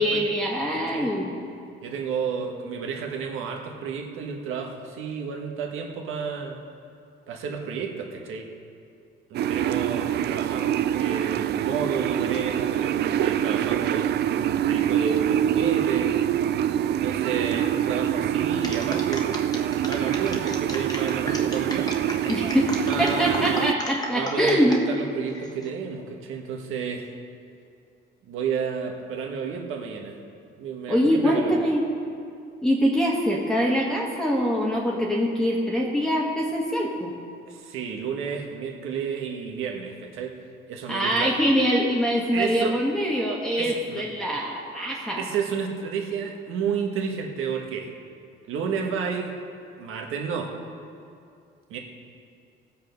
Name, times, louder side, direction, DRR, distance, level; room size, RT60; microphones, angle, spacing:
voice 1, 0.0-1.3 22.3-24.8 30.9-31.9 32.6-37.1 40.9-45.3, equal, 5° left, -4 dB, 1.4 m, -24 dB
voice 2, 1.8-6.6 7.3-8.5 9.3-16.1 17.0-19.4 19.9-21.9 22.9-23.7 24.1-27.2 28.2-30.2 30.6-31.6 37.5-40.4 40.7-41.3 42.3-42.8 43.6-44.0 45.2-47.9 48.5-49.3 49.8-50.5 51.7-51.8, right 6 dB, 75° right, 2 dB, 1.6 m, -31 dB
sound 1, 9.3-23.7, right 10 dB, 55° right, 0.4 m, -25 dB
sound 2, 18.6-24.8 25.3-25.7, left 1 dB, 20° left, 1.3 m, -35 dB
18.0 x 7.2 x 5.4 m, 2.5 s
cardioid pair, 135°, 21 cm